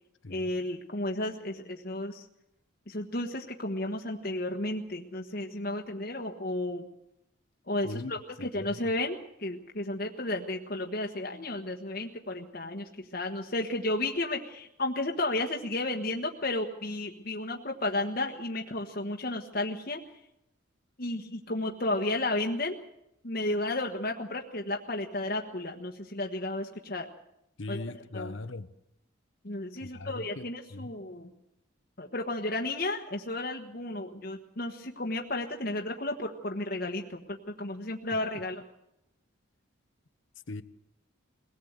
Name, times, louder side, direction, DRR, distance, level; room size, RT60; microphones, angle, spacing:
voice 1, 0.3-2.3 2.9-6.9 7.7-20.0 21.0-22.8 23.2-27.1 27.7-27.8 28.1-28.3 29.4-31.3 32.0-38.6, left 2 dB, 45° left, 2 dB, 1.4 m, -33 dB
voice 2, 8.4-8.8 27.6-28.7 29.8-30.9 40.5-40.6, left 2 dB, 65° left, 13 dB, 1.0 m, -40 dB
22.5 x 17.5 x 8.1 m, 0.83 s
head